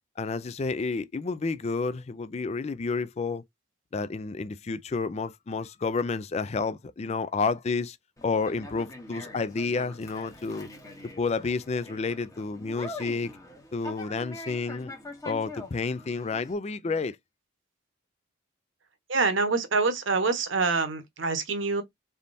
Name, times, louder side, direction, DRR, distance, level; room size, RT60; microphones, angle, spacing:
voice 1, 0.2-3.4 3.9-8.0 8.2-10.7 11.2-13.3 13.7-14.9 15.2-17.2, left 4 dB, 30° left, 0.3 m, -30 dB
Conversation, 8.2-16.5, left 2 dB, 15° left, 0.9 m, -44 dB
voice 2, 19.1-21.8, right 4 dB, 65° right, 1.0 m, -26 dB
4.0 x 3.5 x 2.6 m
head